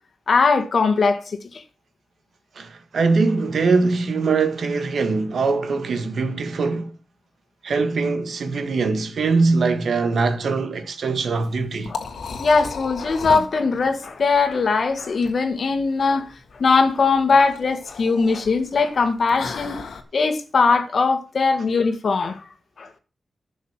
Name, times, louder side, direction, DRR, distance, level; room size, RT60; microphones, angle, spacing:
voice 1, 0.3-1.4 11.9-12.0 12.4-16.3 16.6-19.8 20.1-22.4 22.8-22.9, left 4 dB, 55° left, 1.8 m, -20 dB
voice 2, 2.6-6.9 7.6-11.9, right 4 dB, 70° right, 1.7 m, -22 dB
Liquid, 11.3-20.0, left 5 dB, 85° left, 1.9 m, -36 dB
11.0 x 6.3 x 7.3 m
wide cardioid pair, 110°, 0 cm